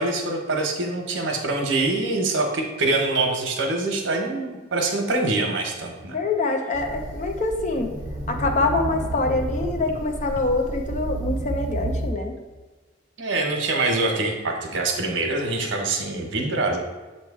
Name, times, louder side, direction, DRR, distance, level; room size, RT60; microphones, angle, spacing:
voice 1, 0.0-6.2 13.2-16.8, right 2 dB, 90° right, 3 dB, 1.1 m, -24 dB
voice 2, 6.1-7.9 8.3-12.3, left 3 dB, 40° left, 4 dB, 0.7 m, -25 dB
sound 1, 6.7-12.1, right 2 dB, 35° right, 1.2 m, -31 dB
7.1 x 3.1 x 4.7 m, 1.3 s
head